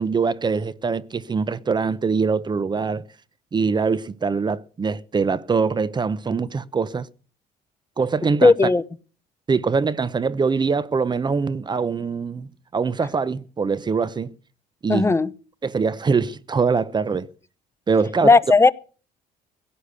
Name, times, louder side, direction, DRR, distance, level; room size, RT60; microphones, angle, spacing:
voice 1, 0.0-3.0 3.5-7.1 8.0-8.5 9.5-14.3 14.8-15.1 15.6-17.3 17.9-18.3, right 5 dB, 25° right, 0.8 m, -23 dB
voice 2, 8.4-8.8 14.9-15.3 18.2-18.7, left 3 dB, 15° left, 0.7 m, -15 dB
16.5 x 9.9 x 6.8 m
cardioid pair, 110°, 17 cm